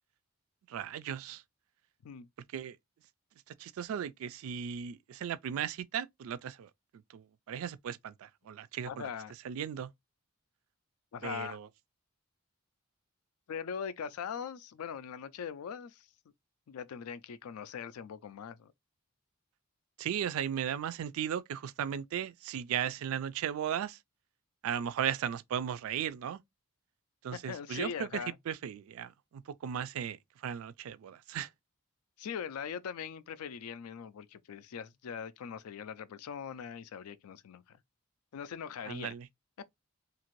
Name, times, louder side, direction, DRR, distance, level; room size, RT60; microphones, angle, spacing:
voice 1, 0.7-1.4 2.5-2.8 3.6-6.7 7.1-9.1 9.4-9.9 11.2-11.7 20.0-24.0 24.6-26.4 27.2-31.5 38.9-39.3, right 9 dB, 70° right, 0.3 m, -36 dB
voice 2, 8.9-9.3 11.1-11.6 13.5-16.1 16.7-18.7 27.3-28.4 32.2-37.8 38.3-39.1, left 7 dB, 85° left, 0.4 m, -41 dB
2.8 x 2.5 x 3.0 m
head